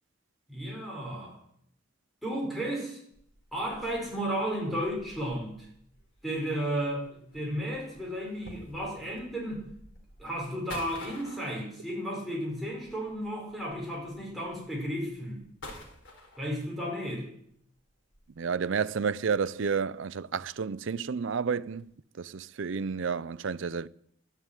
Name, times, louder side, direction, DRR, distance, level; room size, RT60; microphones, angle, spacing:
voice 1, 0.5-1.4 2.2-3.0 3.5-5.7 6.2-9.6 10.2-15.4 16.4-17.3, equal, ahead, 5.5 m, -33 dB
sound 1, 3.1-16.9 17.5-20.0 20.3-20.4 21.0-21.3 21.6-21.9, left 1 dB, 65° left, 4.0 m, -51 dB
voice 2, 18.4-21.8 22.2-23.9, right 5 dB, 70° right, 0.5 m, -30 dB
13.0 x 9.6 x 9.2 m
head